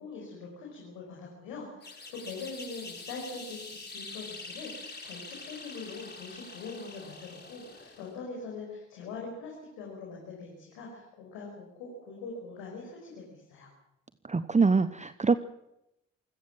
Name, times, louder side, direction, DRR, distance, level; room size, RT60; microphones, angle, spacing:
voice 1, 0.0-13.7, left 4 dB, 85° left, -1 dB, 5.6 m, -43 dB
sound 1, 1.8-8.2, left 3 dB, 30° left, 5.4 m, -45 dB
voice 2, 14.2-15.3, right 4 dB, 20° right, 13 dB, 1.0 m, -24 dB
27.0 x 17.0 x 7.6 m, 0.87 s
hypercardioid pair, 45°, 32 cm